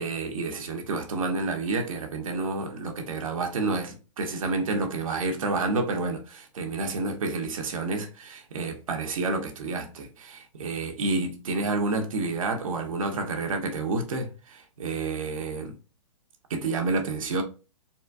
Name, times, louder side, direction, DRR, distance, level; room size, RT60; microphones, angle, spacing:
voice 1, 0.0-15.7 16.5-17.4, right 3 dB, 80° right, 1.2 m, -29 dB
4.2 x 2.5 x 2.3 m
hypercardioid pair, 165°, 17 cm